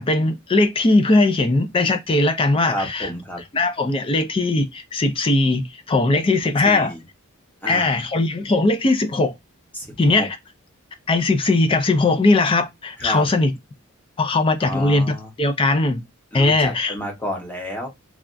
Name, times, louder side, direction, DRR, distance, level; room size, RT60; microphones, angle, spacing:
voice 1, 0.0-3.1 3.5-6.9 7.7-9.3 10.0-10.3 11.1-13.5 14.2-16.0 16.3-16.9, left 2 dB, 25° left, 0.3 m, -19 dB
voice 2, 2.7-3.4 6.6-7.0 7.6-8.0 9.7-10.3 13.0-13.3 14.6-15.3 16.3-17.9, equal, 10° left, 0.8 m, -31 dB
3.3 x 2.3 x 2.5 m
head